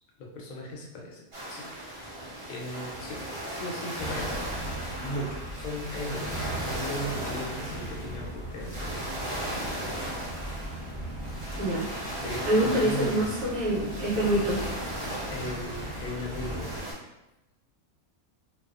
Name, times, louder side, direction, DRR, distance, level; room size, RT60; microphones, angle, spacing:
voice 1, 0.2-1.7 2.5-4.4 5.0-6.5 6.7-9.1 11.5-11.6 12.2-13.3 15.3-16.8, equal, 70° left, -1 dB, 1.0 m, -37 dB
sound 1, 1.3-16.9, right 1 dB, 55° right, 0.3 m, -37 dB
sound 2, 4.0-16.8, right 1 dB, 25° right, 1.1 m, -39 dB
voice 2, 11.6-14.6, right 1 dB, 70° right, -6 dB, 1.1 m, -26 dB
2.6 x 2.3 x 2.4 m, 0.95 s
omnidirectional pair, 1.5 m